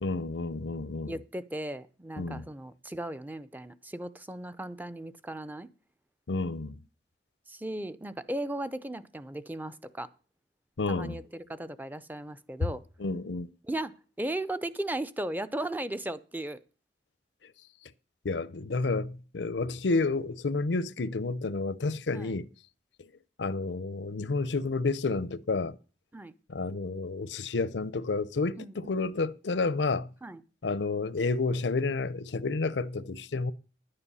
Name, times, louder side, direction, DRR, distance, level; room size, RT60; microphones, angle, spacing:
voice 1, 0.0-1.1 2.2-2.4 6.3-6.8 10.8-11.2 13.0-13.5 18.2-22.5 23.0-23.1 23.4-25.7 26.5-30.1 30.6-33.5, left 3 dB, 85° left, 0.6 m, -30 dB
voice 2, 1.1-5.7 7.5-10.1 10.9-12.8 13.6-16.6 22.1-22.4 26.1-26.3 28.6-29.0 30.2-30.4, right 1 dB, 10° right, 0.5 m, -36 dB
10.5 x 9.9 x 5.5 m
head